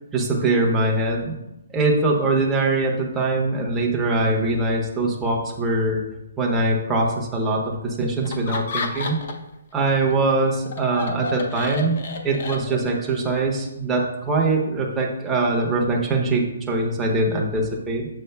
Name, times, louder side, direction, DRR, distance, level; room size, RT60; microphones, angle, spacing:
voice 1, 0.1-1.3 1.7-6.0 6.4-9.2 9.7-12.0 12.2-18.1, right 2 dB, 5° right, -3 dB, 0.7 m, -22 dB
Laughter, 8.2-9.5 9.9-13.1, left 4 dB, 40° left, 0.6 m, -31 dB
7.1 x 6.5 x 2.2 m, 0.93 s
hypercardioid pair, 175°, 0 cm